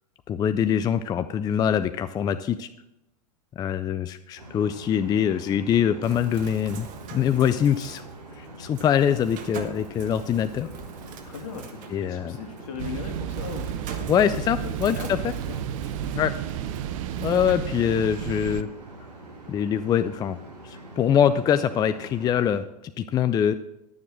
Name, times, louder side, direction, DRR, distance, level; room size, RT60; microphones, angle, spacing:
voice 1, 0.3-2.7 3.6-6.9 7.1-8.0 8.4-10.7 11.9-12.4 14.1-15.0 16.1-16.3 17.2-18.7 19.5-20.4 20.6-23.5, left 9 dB, 20° left, 11 dB, 0.4 m, -24 dB
sound 1, 4.4-22.6, right 2 dB, 85° right, 3.0 m, -44 dB
Bird, 6.0-17.5, right 6 dB, 40° right, 1.4 m, -43 dB
voice 2, 11.3-16.2, left 6 dB, 60° left, 6 dB, 2.0 m, -39 dB
sound 2, 12.8-18.6, right 10 dB, 55° right, 0.7 m, -32 dB
11.5 x 7.2 x 6.2 m, 0.87 s
hypercardioid pair, 105°, 20 cm